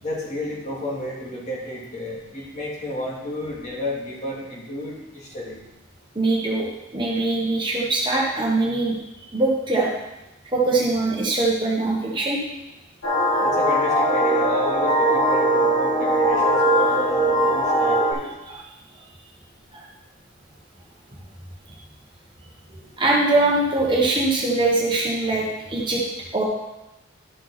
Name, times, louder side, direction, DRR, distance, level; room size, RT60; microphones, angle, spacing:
voice 1, 0.0-5.6 13.4-18.2, left 1 dB, 35° left, -4 dB, 2.4 m, -31 dB
voice 2, 6.1-6.7 6.9-9.0 9.3-9.9 10.5-12.4 13.3-13.4 18.5-18.6 19.7-19.8 22.7-26.0 26.3-26.4, right 2 dB, 25° right, -3 dB, 1.3 m, -22 dB
sound 1, 13.0-18.1, right 1 dB, 75° left, 3.1 m, -20 dB
12.0 x 5.7 x 4.2 m, 0.97 s
head